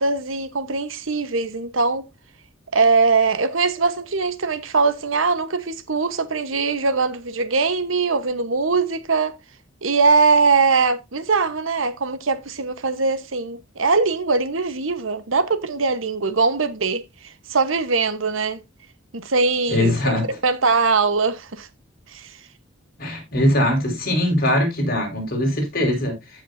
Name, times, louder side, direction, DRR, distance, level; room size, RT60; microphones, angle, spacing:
voice 1, 0.0-2.1 2.7-9.3 9.8-17.0 17.5-18.6 19.1-19.9 20.4-21.7 22.1-22.3, right 4 dB, 90° right, 1.1 m, -21 dB
voice 2, 19.7-20.2 23.0-26.1, left 1 dB, 50° left, 4.8 m, -21 dB
15.0 x 6.2 x 2.7 m
head